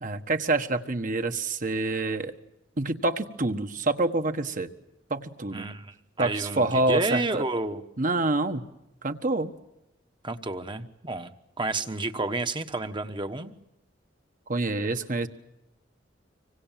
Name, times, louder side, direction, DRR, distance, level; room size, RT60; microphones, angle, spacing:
voice 1, 0.0-2.3 2.8-4.7 5.1-5.7 6.2-7.4 8.0-8.7 9.0-9.5 14.5-15.3, right 2 dB, 45° right, 7 dB, 1.4 m, -27 dB
voice 2, 5.5-7.8 10.2-13.5, right 2 dB, 25° right, 8 dB, 1.3 m, -31 dB
26.0 x 24.5 x 7.6 m, 0.89 s
head